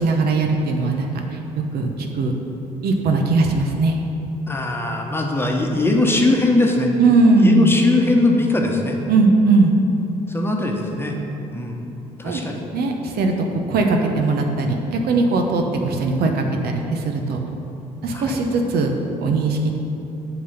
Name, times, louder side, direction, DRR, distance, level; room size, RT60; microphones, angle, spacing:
voice 1, 0.0-2.3 2.8-4.0 7.0-7.7 9.1-9.7 12.2-12.4 12.7-17.4 18.0-18.9 19.2-19.7, right 3 dB, 65° right, 3 dB, 0.9 m, -19 dB
voice 2, 4.5-6.9 7.4-9.0 10.3-11.2 11.5-11.8 12.2-12.6 18.1-18.4, left 2 dB, 15° left, 1 dB, 1.1 m, -20 dB
8.3 x 4.0 x 5.7 m, 2.9 s
hypercardioid pair, 55°, 17 cm